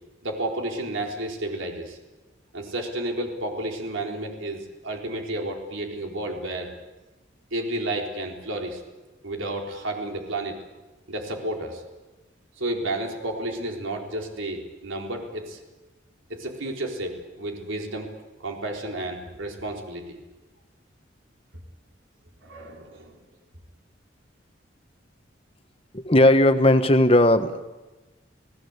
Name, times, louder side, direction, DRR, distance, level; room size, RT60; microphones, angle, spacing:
voice 1, 0.2-2.0 2.5-6.7 7.5-8.8 9.2-10.6 11.1-11.8 12.5-15.6 16.3-18.1 18.4-20.2 22.4-23.2, right 1 dB, 90° right, 2 dB, 4.0 m, -31 dB
voice 2, 25.9-27.6, left 1 dB, 30° left, 9 dB, 1.3 m, -17 dB
29.5 x 18.0 x 8.2 m, 1.1 s
head